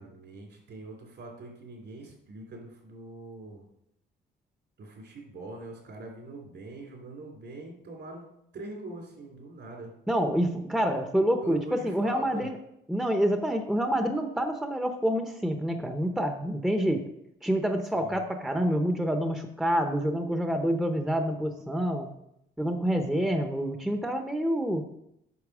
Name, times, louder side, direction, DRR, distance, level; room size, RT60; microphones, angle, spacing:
voice 1, 0.0-3.6 4.8-8.2 8.5-9.9 11.4-12.5 18.0-18.2, right 2 dB, 65° right, 0 dB, 3.6 m, -42 dB
voice 2, 10.1-12.6 12.9-17.0 17.4-22.1 22.6-24.8, equal, ahead, 5 dB, 0.8 m, -27 dB
8.4 x 5.9 x 4.9 m, 0.78 s
cardioid pair, 90°, 20 cm